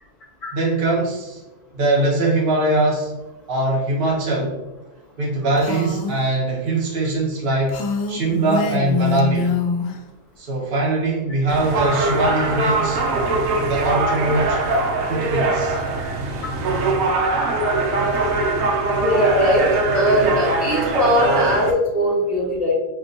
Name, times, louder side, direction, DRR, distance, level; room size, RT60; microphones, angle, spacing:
voice 1, 0.5-1.4 1.7-3.1 3.5-4.6 5.2-7.8 8.1-9.5 10.4-13.0 13.6-14.6 15.1-15.8, right 2 dB, 50° right, -4 dB, 0.7 m, -21 dB
Female speech woman speaking, 5.6-6.2 7.7-10.0, left 4 dB, 85° left, 1.2 m, -24 dB
sound 1, 11.5-21.7, right 3 dB, 70° right, 1.0 m, -22 dB
voice 2, 19.0-22.7, equal, 30° left, -9 dB, 0.8 m, -20 dB
5.9 x 2.2 x 2.6 m, 1.0 s
omnidirectional pair, 1.8 m